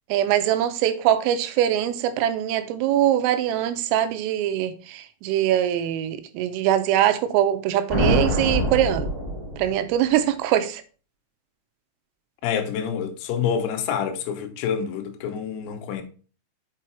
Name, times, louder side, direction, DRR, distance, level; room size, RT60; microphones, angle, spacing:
voice 1, 0.1-9.1 9.6-10.8, right 11 dB, 90° right, 3.3 m, -22 dB
sound 1, 7.9-10.0, right 1 dB, 15° left, 3.3 m, -24 dB
voice 2, 12.4-16.0, left 8 dB, 85° left, 3.8 m, -27 dB
7.7 x 5.7 x 4.4 m
omnidirectional pair, 6.0 m